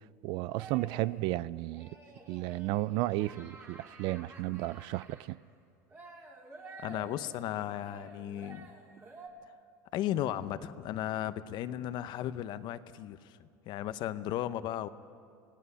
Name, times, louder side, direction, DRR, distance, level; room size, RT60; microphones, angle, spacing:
voice 1, 0.2-1.9 2.3-5.4, right 18 dB, 65° right, 0.4 m, -33 dB
sound 1, 0.6-1.2 1.7-5.3 5.9-9.3, right 3 dB, 25° right, 3.4 m, -51 dB
voice 2, 6.8-8.7 9.9-14.9, left 12 dB, 55° left, 0.9 m, -35 dB
27.0 x 18.0 x 5.7 m
supercardioid pair, 105°, 9 cm